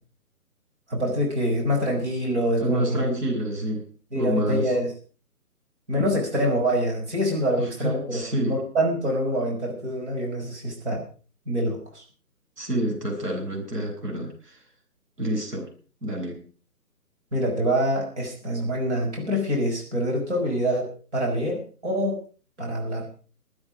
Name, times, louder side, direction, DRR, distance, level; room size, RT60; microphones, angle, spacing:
voice 1, 0.9-3.0 4.1-4.9 5.9-11.0 11.5-12.0 17.3-22.2 22.6-23.1, equal, 45° right, -1 dB, 5.6 m, -25 dB
voice 2, 2.6-3.9 4.1-4.7 7.6-8.6 12.6-14.6 15.2-15.7 16.0-16.4, right 1 dB, 85° right, 1 dB, 7.8 m, -28 dB
22.0 x 9.6 x 4.9 m, 0.38 s
hypercardioid pair, 165°, 46 cm